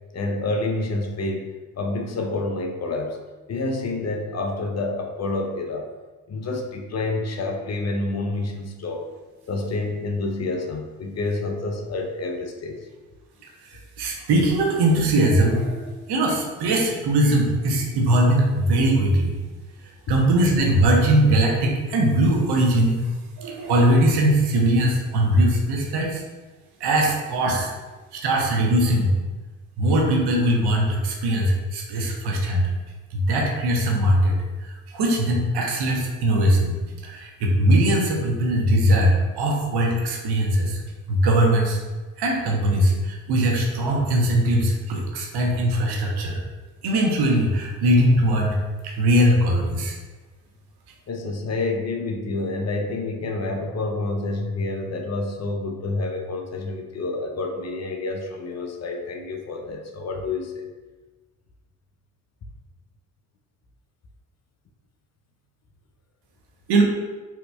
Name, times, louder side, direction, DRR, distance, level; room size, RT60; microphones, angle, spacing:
voice 1, 0.1-3.2 3.5-5.9 6.3-9.1 9.5-12.9 51.1-60.6, left 2 dB, 40° left, 3 dB, 0.6 m, -28 dB
voice 2, 13.7-19.3 20.1-23.1 23.4-26.2 26.8-27.7 28.1-29.1 29.8-32.7 33.1-34.4 34.6-36.8 37.0-40.8 41.1-41.8 42.2-46.4 46.8-48.6 48.8-49.9 66.7-66.8, right 1 dB, 65° right, 0 dB, 0.9 m, -20 dB
4.3 x 2.9 x 2.2 m, 1.3 s
hypercardioid pair, 50°, 42 cm